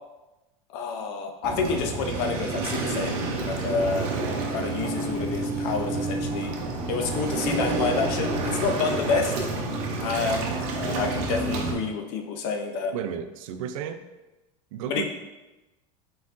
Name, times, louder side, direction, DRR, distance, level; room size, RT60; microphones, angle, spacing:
voice 1, 0.7-6.5 6.9-9.3 10.0-12.9 14.9-15.1, left 5 dB, 55° left, 4 dB, 0.6 m, -29 dB
Waves surf, 1.4-11.7, right 3 dB, 50° right, 0.8 m, -29 dB
voice 2, 12.9-14.0 14.7-15.1, right 8 dB, 85° right, 9 dB, 0.4 m, -33 dB
4.2 x 4.1 x 2.5 m, 1.1 s
supercardioid pair, 155°, 17 cm